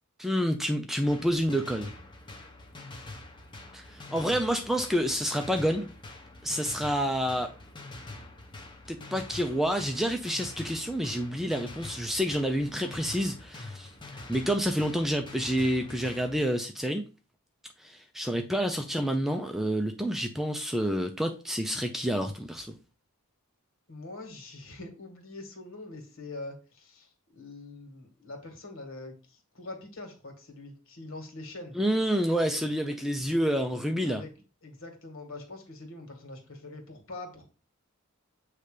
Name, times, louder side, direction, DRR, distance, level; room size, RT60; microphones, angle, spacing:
voice 1, 0.2-1.9 3.7-5.9 6.4-7.5 8.9-13.9 14.3-17.0 17.8-22.8 31.7-34.2, equal, ahead, 0.5 m, -28 dB
sound 1, 1.1-16.3, left 2 dB, 20° left, 1.0 m, -45 dB
voice 2, 23.9-31.8 34.1-34.3 34.6-37.5, left 2 dB, 65° left, 2.1 m, -44 dB
8.2 x 3.3 x 5.0 m
head